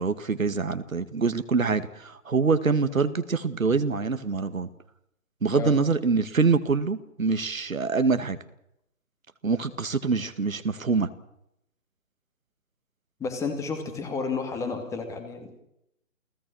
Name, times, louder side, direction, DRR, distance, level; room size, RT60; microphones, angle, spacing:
voice 1, 0.0-4.7 5.4-8.4 9.4-11.1, right 4 dB, 70° right, 11 dB, 2.2 m, -25 dB
voice 2, 13.2-15.5, left 4 dB, 5° left, 7 dB, 2.4 m, -31 dB
29.5 x 18.0 x 6.4 m, 0.79 s
figure-of-eight pair, 145°, 42 cm